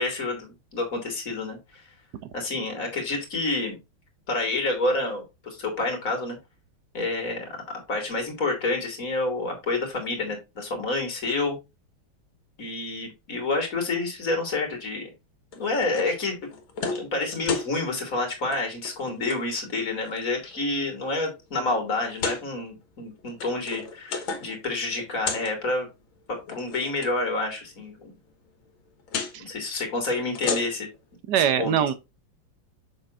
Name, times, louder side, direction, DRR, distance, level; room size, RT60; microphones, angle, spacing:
voice 1, 0.0-1.8 2.3-3.8 4.3-6.4 6.9-7.5 7.9-11.6 12.6-15.1 15.6-16.4 16.9-25.9 26.3-28.1 29.4-30.9 31.4-31.7, left 2 dB, 40° left, 2.6 m, -28 dB
sound 1, 15.5-16.1 16.5-17.1 17.3-17.7 18.4-18.6 18.8-19.4 20.1-20.6 21.1-21.2 22.1-22.4 23.2-24.6 24.9-25.5 26.4-27.1 29.1-29.3 30.2-31.0, left 5 dB, 70° left, 2.1 m, -32 dB
voice 2, 31.3-31.9, right 9 dB, 65° right, 1.2 m, -22 dB
7.0 x 6.6 x 2.4 m
omnidirectional pair, 2.4 m